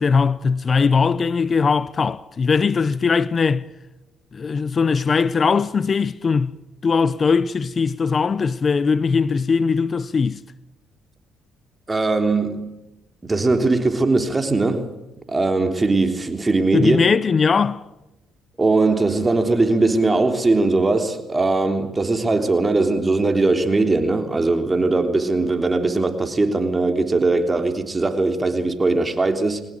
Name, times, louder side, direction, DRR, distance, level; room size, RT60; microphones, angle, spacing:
voice 1, 0.0-3.7 4.3-6.6 6.8-10.4 16.7-17.9, left 5 dB, 40° left, 0.8 m, -20 dB
voice 2, 11.9-12.7 13.2-14.9 15.3-17.0 18.6-29.6, right 3 dB, 25° right, 3.5 m, -20 dB
22.0 x 19.0 x 9.2 m
supercardioid pair, 65°, 0 cm